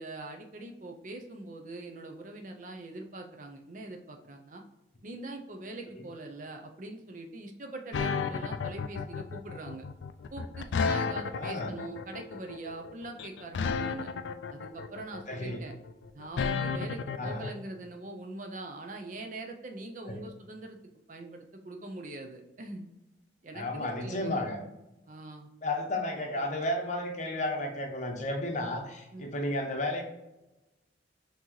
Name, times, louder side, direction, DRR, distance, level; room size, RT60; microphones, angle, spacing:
voice 1, 0.0-4.6 5.0-9.9 10.3-14.1 14.5-15.7 16.1-20.8 21.1-22.8 23.4-24.4 25.1-25.5 29.1-29.3, right 2 dB, 45° right, 4 dB, 0.5 m, -43 dB
sound 1, 7.9-17.5, left 5 dB, 75° left, 0.3 m, -32 dB
voice 2, 11.3-11.7 15.3-15.6 17.2-17.4 20.0-20.2 23.5-24.6 25.6-30.0, left 1 dB, 40° left, 3 dB, 0.7 m, -33 dB
5.8 x 2.8 x 3.1 m, 0.98 s
head